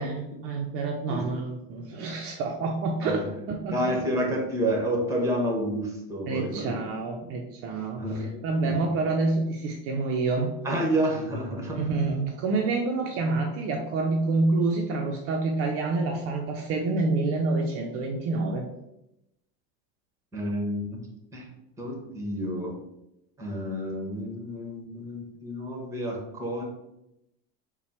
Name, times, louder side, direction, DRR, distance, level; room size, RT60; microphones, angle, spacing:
voice 1, 0.0-4.0 6.3-10.6 11.7-18.7, right 3 dB, 45° right, 1 dB, 0.6 m, -28 dB
voice 2, 3.7-6.7 8.0-8.7 10.6-11.8 20.3-21.1 21.3-21.5 21.8-22.7 23.4-26.6, equal, 10° right, 0 dB, 1.2 m, -29 dB
4.1 x 2.2 x 4.3 m, 0.85 s
supercardioid pair, 130°, 31 cm